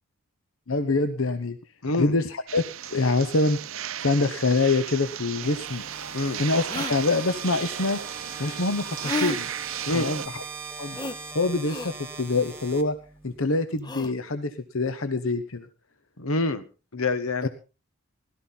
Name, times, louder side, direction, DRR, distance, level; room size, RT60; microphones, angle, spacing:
voice 1, 0.7-1.6 2.0-2.6 2.9-3.6 4.0-5.8 6.4-8.0 8.4-9.5 9.9-10.4 10.8-11.0 11.3-13.0 13.2-15.7 17.4-17.5, left 3 dB, 70° left, 10 dB, 1.0 m, -25 dB
voice 2, 1.8-2.1 6.1-6.4 9.9-10.1 16.2-16.6 16.9-17.5, left 2 dB, 85° left, 12 dB, 1.4 m, -26 dB
sound 1, 2.5-10.3, right 10 dB, 70° right, 0.7 m, -35 dB
sound 2, 5.4-13.4, right 5 dB, 10° right, 1.4 m, -40 dB
sound 3, 5.7-5.8 6.7-7.0 9.0-9.4 10.9-11.2 11.6-11.9 13.8-14.1, left 3 dB, 20° left, 0.6 m, -31 dB
17.0 x 13.0 x 4.1 m, 0.31 s
head